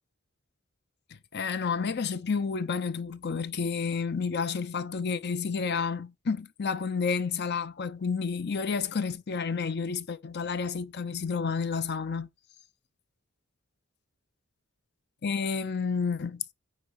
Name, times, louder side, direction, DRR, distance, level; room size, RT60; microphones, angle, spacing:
voice 1, 1.3-12.3 15.2-16.5, left 5 dB, 50° left, 0.6 m, -30 dB
9.2 x 4.6 x 4.7 m
head